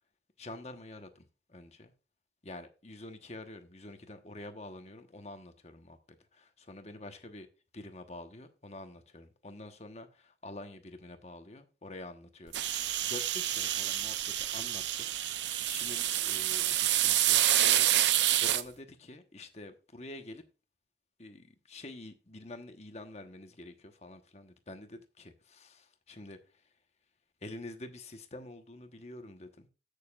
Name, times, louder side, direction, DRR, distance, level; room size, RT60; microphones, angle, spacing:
voice 1, 0.4-1.9 2.4-6.0 6.3-7.5 7.7-14.2 14.5-20.4 21.2-26.7 27.4-29.7, left 2 dB, 35° left, 1.1 m, -47 dB
sound 1, 12.5-18.6, right 12 dB, 80° right, 0.6 m, -28 dB
15.5 x 6.7 x 2.4 m
head